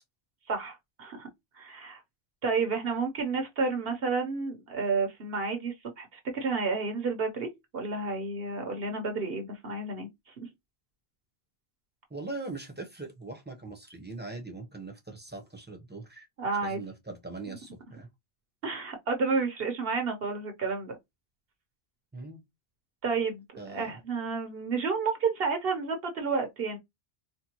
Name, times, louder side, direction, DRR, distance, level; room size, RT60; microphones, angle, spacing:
voice 1, 0.5-1.3 1.6-2.0 2.4-10.1 16.4-16.8 17.5-17.6 18.6-20.9 23.0-23.4 23.7-26.8, right 4 dB, 70° right, 1.0 m, -31 dB
voice 2, 12.1-16.3 16.6-18.1 22.1-22.4 23.6-24.0, right 3 dB, 10° right, 0.8 m, -41 dB
4.3 x 2.2 x 2.9 m
omnidirectional pair, 1.0 m